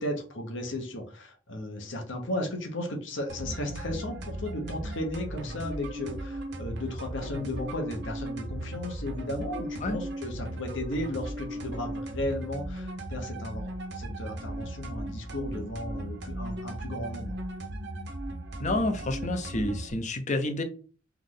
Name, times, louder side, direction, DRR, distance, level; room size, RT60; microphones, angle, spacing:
voice 1, 0.0-17.4, left 1 dB, 65° left, 3 dB, 1.1 m, -35 dB
sound 1, 3.3-19.9, right 1 dB, 60° right, 0.9 m, -37 dB
voice 2, 18.6-20.6, left 2 dB, 35° left, 6 dB, 0.7 m, -29 dB
3.6 x 3.1 x 3.9 m, 0.39 s
head